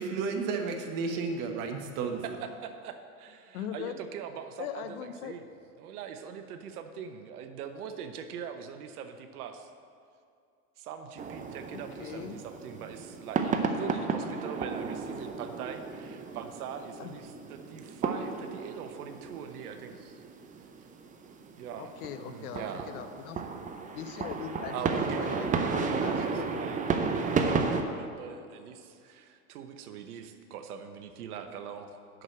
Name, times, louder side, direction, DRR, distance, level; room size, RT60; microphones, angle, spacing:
voice 1, 0.0-2.2, right 4 dB, 45° right, 3 dB, 1.5 m, -32 dB
voice 2, 2.6-5.4 5.8-9.7 10.8-20.2 21.6-22.9 24.7-32.2, right 7 dB, 75° right, 7 dB, 1.0 m, -42 dB
voice 3, 3.5-4.0 4.6-5.4 11.7-12.4 17.0-17.2 21.8-23.4 23.9-26.7 27.7-27.9, left 9 dB, 70° left, 9 dB, 0.9 m, -40 dB
sound 1, 11.2-27.8, right 5 dB, 15° right, 0.6 m, -33 dB
7.8 x 6.3 x 7.7 m, 2.4 s
hypercardioid pair, 105°, 45 cm